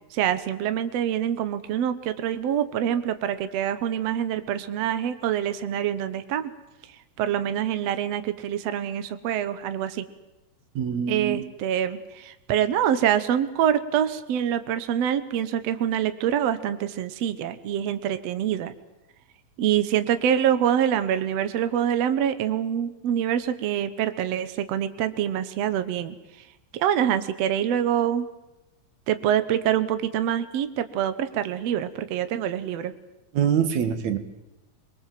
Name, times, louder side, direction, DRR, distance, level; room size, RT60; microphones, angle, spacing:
voice 1, 0.1-6.5 7.2-10.0 11.1-18.7 19.6-26.1 26.7-28.3 29.1-32.9, right 10 dB, 75° right, 11 dB, 1.5 m, -25 dB
voice 2, 10.8-11.4 33.3-34.2, right 8 dB, 55° right, 10 dB, 2.4 m, -24 dB
24.5 x 22.5 x 7.6 m, 0.99 s
omnidirectional pair, 4.5 m